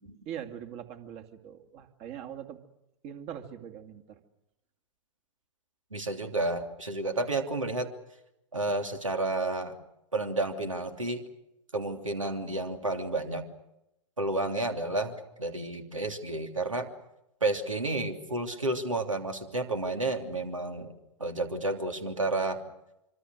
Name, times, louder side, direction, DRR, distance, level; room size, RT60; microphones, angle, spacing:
voice 1, 0.3-2.6 3.0-4.2, right 9 dB, 40° right, 6 dB, 2.5 m, -42 dB
voice 2, 5.9-7.9 8.5-9.7 10.1-11.2 11.7-13.4 14.2-16.9 17.4-20.9 21.2-22.6, right 2 dB, 85° right, 5 dB, 3.1 m, -31 dB
25.5 x 25.0 x 6.5 m, 0.86 s
figure-of-eight pair, 100°, 16 cm